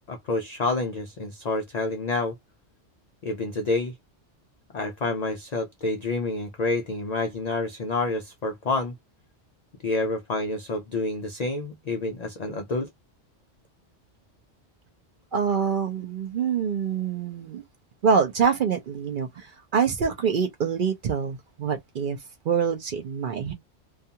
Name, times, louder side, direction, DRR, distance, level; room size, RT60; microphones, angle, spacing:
voice 1, 0.1-2.4 3.2-3.9 4.7-8.9 9.8-12.9, left 3 dB, 70° left, 0.4 m, -28 dB
voice 2, 15.3-17.6 18.0-22.2 22.4-23.5, right 6 dB, 60° right, 0.6 m, -25 dB
2.4 x 2.3 x 2.7 m
omnidirectional pair, 1.2 m